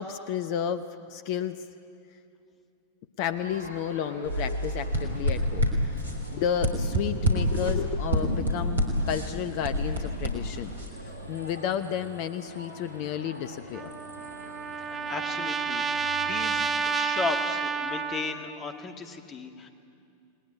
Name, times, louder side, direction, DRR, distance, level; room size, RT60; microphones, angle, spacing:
voice 1, 0.0-1.7 3.2-6.0 6.3-13.9, left 9 dB, 45° left, 11 dB, 0.8 m, -32 dB
Crowd, 3.2-16.6, equal, 90° left, 7.2 m, -45 dB
sound 1, 4.2-10.9, equal, 75° right, 3.7 m, -28 dB
Trumpet, 13.7-18.6, right 6 dB, 20° right, 1.1 m, -30 dB
voice 2, 14.8-19.7, left 4 dB, 25° left, 6 dB, 2.2 m, -36 dB
29.5 x 19.5 x 9.5 m, 2.5 s
figure-of-eight pair, 90°, 0 cm